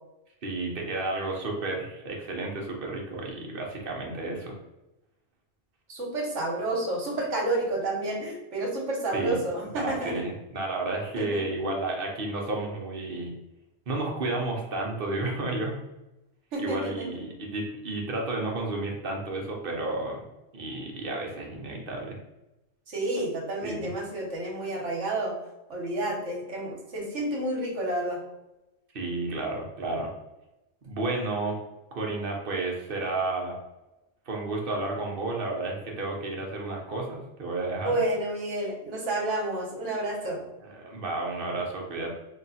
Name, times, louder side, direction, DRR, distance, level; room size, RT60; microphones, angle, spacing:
voice 1, 0.4-4.6 9.1-9.4 9.7-13.3 13.9-15.8 16.6-20.3 20.5-22.2 23.6-23.9 28.9-30.1 30.8-31.6 31.9-33.6 34.3-38.0 40.6-42.1, right 2 dB, 50° right, 0 dB, 1.0 m, -32 dB
voice 2, 5.9-10.2 11.2-11.4 16.5-17.1 22.9-25.3 25.7-28.2 37.8-40.4, right 2 dB, 70° right, -2 dB, 1.3 m, -30 dB
3.5 x 2.4 x 4.1 m, 0.95 s
omnidirectional pair, 1.3 m